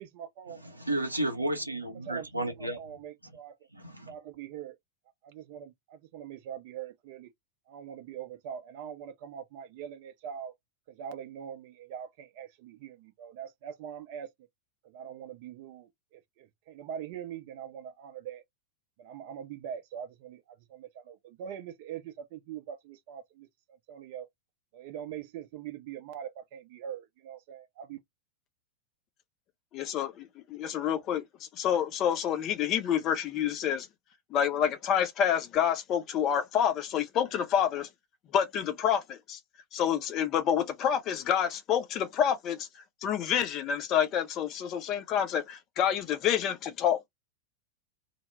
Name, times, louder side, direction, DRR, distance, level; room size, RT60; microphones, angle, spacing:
voice 1, 0.0-0.6 1.9-3.5 4.1-4.8 5.2-7.3 7.7-10.5 10.9-14.3 14.8-18.4 19.0-23.5 23.9-24.3 24.7-28.0, right 9 dB, 50° right, 0.5 m, -43 dB
voice 2, 0.8-2.8 3.7-4.1, right 1 dB, 85° right, 0.7 m, -32 dB
voice 3, 29.7-31.2 31.5-33.9 34.3-37.9 38.3-39.4 39.7-42.7 43.0-47.1, left 9 dB, 35° left, 0.5 m, -28 dB
2.1 x 2.0 x 3.2 m
figure-of-eight pair, 90°, 0 cm